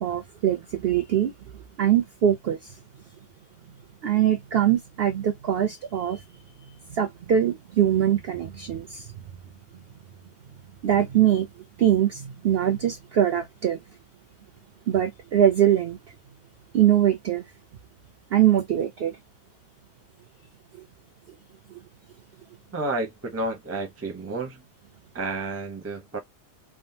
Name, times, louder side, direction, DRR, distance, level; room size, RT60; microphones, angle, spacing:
voice 1, 0.0-1.3 1.8-2.6 4.0-6.2 6.9-9.0 10.8-11.5 11.8-13.8 14.9-16.0 16.7-17.4 18.3-19.2, right 10 dB, 65° right, 0.6 m, -22 dB
voice 2, 22.7-24.6 25.1-26.2, right 2 dB, 15° right, 0.5 m, -31 dB
3.5 x 2.1 x 2.6 m
omnidirectional pair, 1.5 m